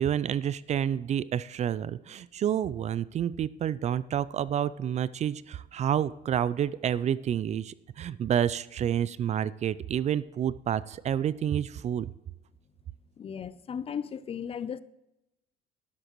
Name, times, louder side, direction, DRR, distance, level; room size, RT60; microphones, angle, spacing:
voice 1, 0.0-12.1, right 9 dB, 40° right, 0.4 m, -29 dB
voice 2, 13.2-14.8, left 7 dB, 35° left, 0.5 m, -36 dB
11.5 x 11.0 x 3.1 m
cardioid pair, 110°, 17 cm